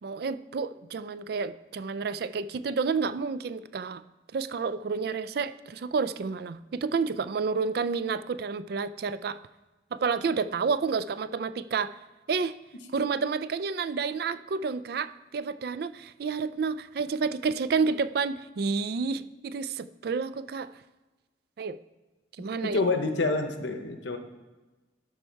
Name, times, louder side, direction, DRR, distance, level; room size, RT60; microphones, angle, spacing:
voice 1, 0.0-4.0 4.3-9.4 9.9-12.0 12.3-12.6 12.9-20.7 21.6-21.8 22.4-22.8, right 5 dB, 50° right, 15 dB, 0.3 m, -30 dB
voice 2, 22.6-24.2, left 3 dB, 70° left, 6 dB, 0.8 m, -27 dB
12.0 x 4.6 x 4.5 m, 1.2 s
head